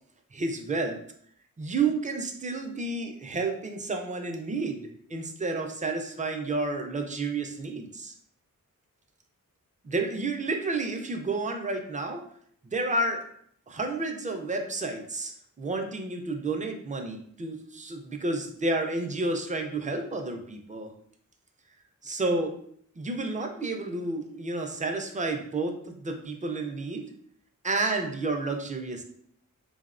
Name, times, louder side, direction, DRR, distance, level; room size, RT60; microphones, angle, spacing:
voice 1, 0.3-1.0 1.6-4.8 5.1-8.1 9.8-12.2 12.7-13.2 13.7-15.3 15.6-20.9 22.0-22.5 23.0-27.1 27.6-29.0, right 3 dB, 25° right, 4 dB, 0.3 m, -30 dB
2.8 x 2.0 x 2.4 m, 0.65 s
wide cardioid pair, 90°, 33 cm